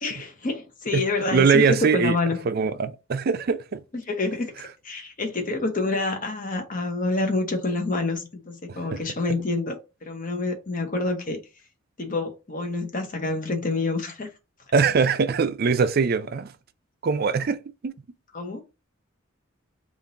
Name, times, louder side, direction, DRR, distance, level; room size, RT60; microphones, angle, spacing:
voice 1, 0.0-2.5 4.1-4.5 4.8-11.4 12.0-14.3 18.3-18.6, left 3 dB, 40° left, 0.9 m, -27 dB
voice 2, 0.9-2.2 2.5-3.8 8.9-9.0 14.7-16.5 17.0-17.9, right 5 dB, 50° right, 0.4 m, -22 dB
3.7 x 2.5 x 3.9 m
head